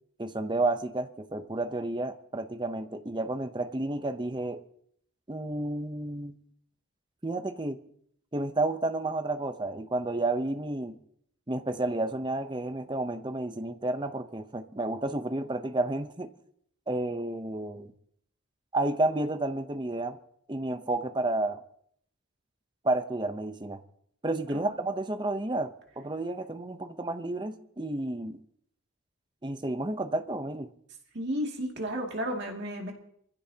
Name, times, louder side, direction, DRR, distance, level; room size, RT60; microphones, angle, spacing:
voice 1, 0.2-4.6 5.3-6.4 7.2-7.8 8.3-11.0 11.5-16.3 16.9-17.9 18.7-20.2 20.5-21.6 22.8-23.8 24.2-28.4 29.4-30.7, right 2 dB, 20° right, 0.8 m, -31 dB
voice 2, 31.1-32.9, equal, 50° right, 2.4 m, -33 dB
24.5 x 15.5 x 2.9 m
head